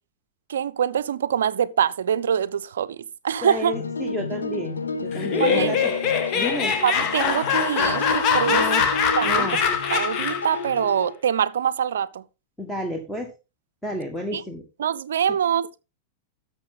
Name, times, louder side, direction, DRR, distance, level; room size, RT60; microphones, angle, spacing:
voice 1, 0.5-3.0 3.2-3.7 5.4-5.7 6.8-8.6 9.1-9.5 9.9-12.2 14.3-14.4 14.8-15.8, right 8 dB, 65° right, 0.6 m, -24 dB
voice 2, 3.4-5.9 6.3-6.8 8.5-8.8 9.2-9.6 12.6-13.3 13.8-14.6, equal, 5° left, 1.7 m, -31 dB
sound 1, 3.7-11.1, left 2 dB, 75° left, 1.8 m, -31 dB
Laughter, 5.1-10.6, left 7 dB, 40° left, 1.7 m, -23 dB
11.5 x 6.9 x 3.8 m
figure-of-eight pair, 90°, 0 cm